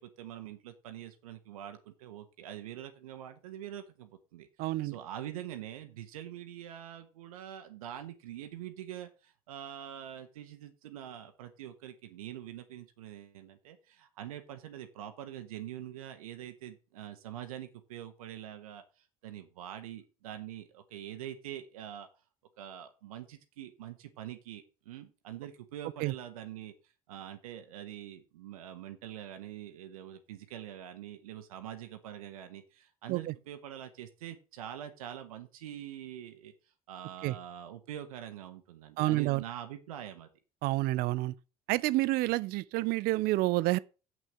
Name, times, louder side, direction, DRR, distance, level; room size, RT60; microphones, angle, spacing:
voice 1, 0.0-22.1 22.6-26.7 27.1-36.5 36.9-40.3, right 11 dB, 75° right, 1.2 m, -44 dB
voice 2, 4.6-4.9 26.0-26.1 33.1-33.2 37.2-37.3 39.0-39.4 40.6-41.3 41.7-43.8, right 18 dB, 55° right, 0.6 m, -28 dB
7.7 x 6.3 x 7.1 m
figure-of-eight pair, 55°, 19 cm